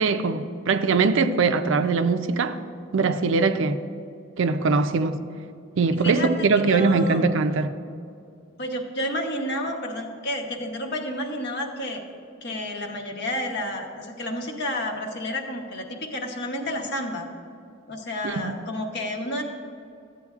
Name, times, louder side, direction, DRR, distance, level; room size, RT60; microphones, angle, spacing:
voice 1, 0.0-2.6 2.9-3.8 4.4-5.2 5.8-7.7 18.2-18.5, right 4 dB, 65° right, 0.4 m, -22 dB
voice 2, 6.0-7.3 8.6-12.0 12.4-17.3 17.9-19.4, left 1 dB, 55° left, 1.0 m, -30 dB
13.5 x 8.5 x 2.4 m
head